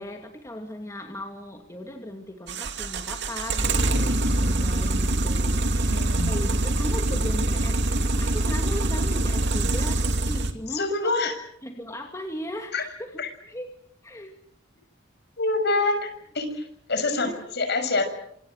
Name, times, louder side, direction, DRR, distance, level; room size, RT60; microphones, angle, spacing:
voice 1, 0.0-11.3 11.6-13.1 13.4-13.7 14.0-14.4 17.0-17.4, left 1 dB, 15° left, 3 dB, 2.4 m, -37 dB
sound 1, 2.5-10.5, right 2 dB, 60° right, 2.6 m, -24 dB
voice 2, 5.9-6.3 10.7-11.3 12.7-12.8 13.2-13.3 15.4-16.1 16.3-17.3 17.5-18.0, left 3 dB, 55° left, 7 dB, 6.8 m, -25 dB
27.0 x 27.0 x 6.5 m, 0.69 s
head